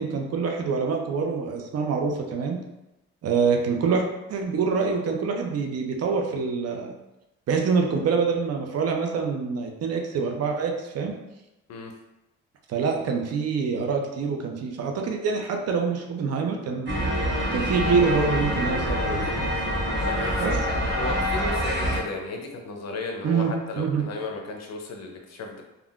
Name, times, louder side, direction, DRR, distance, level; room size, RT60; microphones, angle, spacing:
voice 1, 0.0-2.6 3.2-4.0 4.3-6.9 7.5-11.1 12.7-16.9 17.5-19.5 20.4-20.6 23.2-24.0, right 5 dB, 55° right, 3 dB, 0.5 m, -25 dB
sound 1, 16.9-22.0, equal, 35° right, 1.0 m, -26 dB
voice 2, 20.0-25.6, left 3 dB, 60° left, 2 dB, 0.6 m, -34 dB
3.5 x 2.3 x 2.4 m, 0.97 s
cardioid pair, 90°, 30 cm